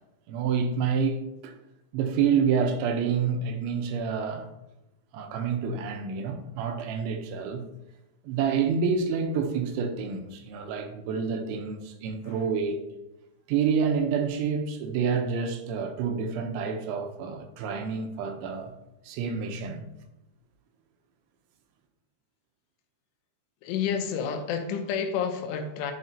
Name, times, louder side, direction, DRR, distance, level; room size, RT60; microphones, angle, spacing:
voice 1, 0.3-1.6 1.9-4.5 5.1-7.7 8.2-12.9 13.5-18.7 19.0-19.9, right 6 dB, 80° right, 3.0 m, -28 dB
voice 2, 23.6-25.9, left 7 dB, 90° left, 3.2 m, -29 dB
11.0 x 5.2 x 2.7 m
omnidirectional pair, 5.4 m